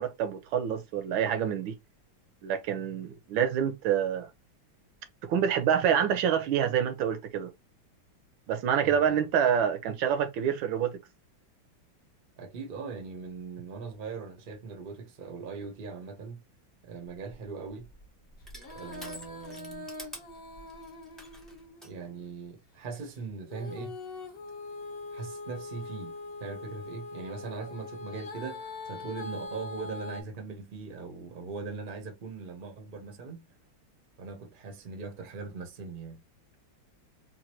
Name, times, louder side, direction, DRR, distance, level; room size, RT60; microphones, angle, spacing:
voice 1, 0.0-1.8 2.4-4.3 5.2-7.5 8.5-11.0, right 8 dB, 80° right, 1.4 m, -27 dB
voice 2, 8.8-9.2 12.4-16.4 16.8-17.9 18.7-19.9 21.8-24.0 25.1-26.1 26.4-33.4 34.2-36.2, right 4 dB, 45° right, 0.6 m, -40 dB
Crushing, 17.1-21.9, equal, ahead, 0.4 m, -49 dB
Female singing, 18.5-22.3 23.5-30.2, left 3 dB, 45° left, 0.7 m, -42 dB
3.9 x 2.5 x 2.9 m
omnidirectional pair, 2.2 m